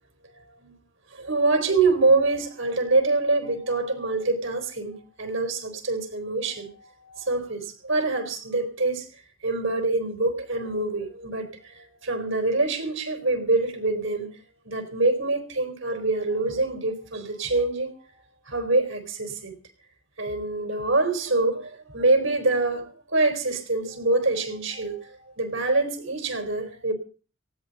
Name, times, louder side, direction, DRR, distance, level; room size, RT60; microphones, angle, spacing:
voice 1, 0.3-0.7 1.1-9.1 9.4-14.3 14.7-17.9 18.5-19.5 20.2-22.8 23.1-26.9, right 3 dB, 70° right, 4 dB, 4.0 m, -25 dB
18.5 x 16.5 x 4.1 m, 0.38 s
head